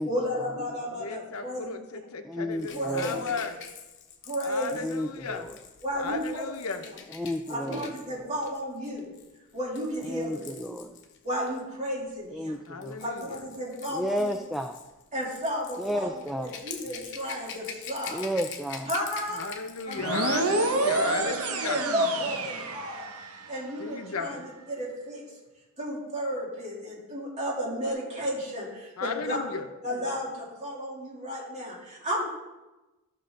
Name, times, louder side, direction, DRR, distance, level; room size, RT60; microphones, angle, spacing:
voice 1, 0.0-1.7 2.7-3.2 4.3-4.8 5.8-6.5 6.9-7.0 7.5-9.1 9.5-10.7 11.2-12.5 13.0-14.3 15.1-16.1 16.4-18.3 18.9-19.4 19.9-20.5 21.0-23.0 23.5-25.2 25.8-29.4 29.8-32.2, equal, 30° right, -5 dB, 3.1 m, -33 dB
voice 2, 0.9-3.6 4.4-5.5 6.0-6.9 12.7-13.4 19.3-21.8 23.8-24.4 29.0-29.7, left 4 dB, 80° left, 7 dB, 0.9 m, -35 dB
voice 3, 2.2-3.2 4.8-5.6 7.1-7.9 10.0-10.9 12.3-13.0 13.9-14.8 15.8-16.6 18.1-18.9, equal, ahead, 5 dB, 0.4 m, -32 dB
Rattle / Rattle (instrument), 2.6-11.6 12.5-20.6 20.9-21.1, left 6 dB, 55° left, 1.0 m, -45 dB
sound 1, 20.0-23.5, right 3 dB, 80° right, 1.1 m, -28 dB
13.5 x 6.4 x 3.9 m, 1.1 s
head